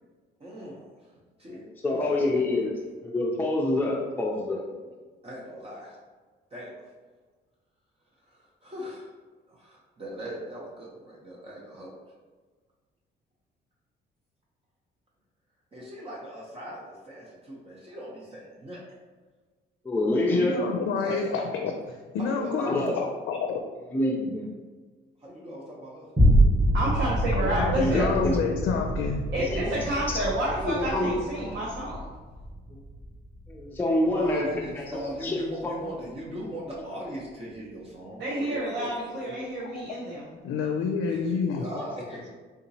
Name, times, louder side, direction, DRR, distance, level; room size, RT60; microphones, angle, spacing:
voice 1, 0.4-0.9 1.4-1.6 2.0-2.3 5.2-6.0 6.5-6.7 8.3-9.1 9.5-12.0 15.7-18.8 21.0-21.3 22.2-23.0 25.2-26.0 34.1-39.3 41.1-42.3, equal, 30° right, -5 dB, 0.8 m, -39 dB
voice 2, 1.8-2.7 3.0-4.6 19.8-20.6 22.6-22.9 23.9-24.5 27.8-28.4 29.4-30.0 30.6-31.6 32.7-32.8 33.5-35.7, left 1 dB, 10° left, -3 dB, 0.5 m, -27 dB
voice 3, 20.3-23.6 27.4-29.3 39.7-40.0 40.4-41.6, left 5 dB, 75° left, 3 dB, 0.4 m, -29 dB
sound 1, 26.2-34.7 35.2-35.3, right 1 dB, 5° right, 1.1 m, -26 dB
voice 4, 26.7-28.1 29.3-32.1 38.2-40.2, right 1 dB, 70° right, -5 dB, 0.8 m, -29 dB
3.6 x 2.8 x 2.7 m, 1.4 s
cardioid pair, 90°, 20 cm